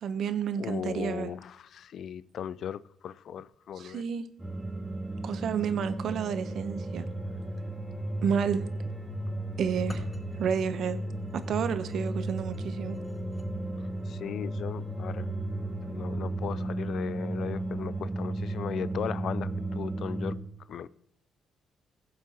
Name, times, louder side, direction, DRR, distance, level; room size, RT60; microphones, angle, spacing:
voice 1, 0.0-1.3 3.8-4.2 5.2-7.1 8.2-8.7 9.6-10.1 10.4-11.0 11.3-13.0, right 7 dB, 65° right, 0.9 m, -30 dB
voice 2, 0.6-4.0 14.1-15.3 15.8-20.4 20.7-20.9, left 9 dB, 65° left, 0.4 m, -37 dB
sound 1, 4.4-20.4, right 1 dB, 10° right, 2.2 m, -34 dB
sound 2, 9.7-13.5, left 2 dB, 25° left, 4.6 m, -51 dB
16.5 x 7.4 x 3.0 m
cardioid pair, 90°, 0 cm